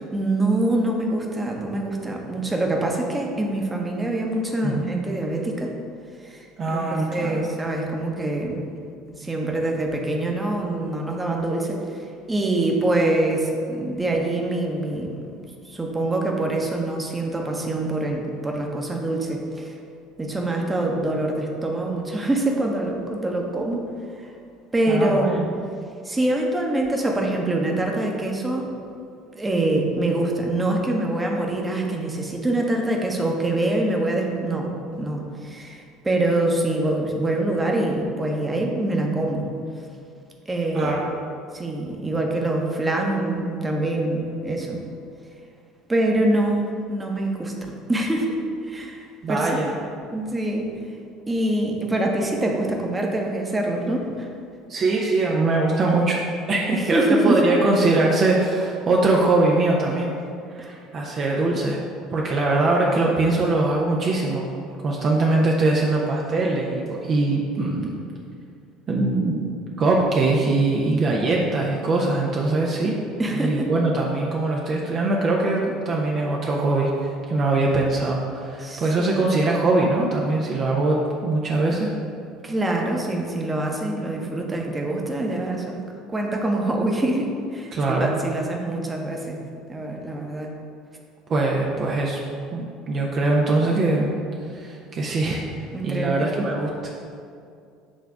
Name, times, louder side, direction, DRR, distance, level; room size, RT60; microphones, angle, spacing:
voice 1, 0.1-5.7 6.2-8.6 9.2-15.3 15.6-19.7 20.2-23.8 24.2-24.3 24.7-25.4 26.0-28.7 29.3-34.7 35.0-39.5 40.5-40.9 41.5-44.8 45.9-48.4 48.7-49.6 50.1-50.7 51.3-54.3 56.7-57.4 60.6-60.7 73.2-73.7 78.6-79.3 82.4-85.8 86.1-89.4 89.7-90.5 95.7-96.3, right 2 dB, 15° right, 0 dB, 1.0 m, -25 dB
voice 2, 4.6-4.9 6.6-7.5 24.9-25.5 40.7-41.1 49.2-49.7 54.7-56.2 56.5-60.1 60.5-61.8 62.1-64.5 64.8-67.9 68.9-72.9 73.3-81.9 87.7-88.2 91.3-92.2 92.5-94.1 94.5-96.9, right 2 dB, 40° right, -2 dB, 0.7 m, -22 dB
7.4 x 3.3 x 4.8 m, 2.4 s
figure-of-eight pair, 65°, 0 cm